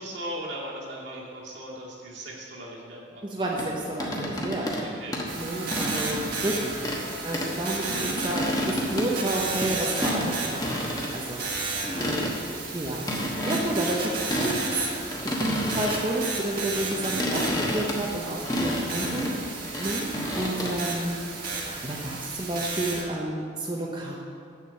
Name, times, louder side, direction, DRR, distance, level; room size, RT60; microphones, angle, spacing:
voice 1, 0.0-3.3 4.8-5.2 5.7-6.0 7.7-8.0 11.9-12.9 13.3-14.2 17.5-17.8, right 1 dB, 65° right, -5 dB, 2.3 m, -40 dB
voice 2, 3.2-4.7 5.3-11.4 11.7-11.8 12.0-12.3 12.7-13.1 13.4-14.0 14.3-19.5 19.8-21.2 21.6-24.2, right 1 dB, 25° right, -3 dB, 0.7 m, -31 dB
sound 1, 3.6-4.9 5.1-6.3 6.8-7.1 7.3-7.5 7.9-9.7 10.0-10.3 10.6-11.1 11.4-11.5 11.8-12.6 13.1-14.6 14.8-16.1 16.6-20.7, equal, 20° left, 1.1 m, -30 dB
sound 2, 5.3-23.0, right 3 dB, 50° right, 1.7 m, -33 dB
7.3 x 7.0 x 7.6 m, 2.4 s
head